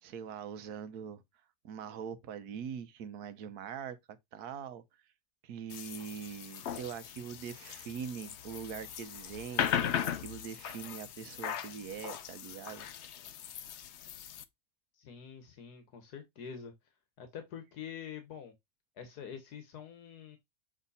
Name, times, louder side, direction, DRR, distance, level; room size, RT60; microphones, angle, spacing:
voice 1, 0.0-1.2 1.6-4.8 5.4-12.9, right 7 dB, 75° right, 1.3 m, -43 dB
sound 1, 5.7-14.4, left 9 dB, 65° left, 0.7 m, -38 dB
voice 2, 14.9-16.7 17.2-18.5 19.0-20.4, left 7 dB, 80° left, 1.6 m, -46 dB
7.4 x 3.1 x 4.1 m
omnidirectional pair, 1.6 m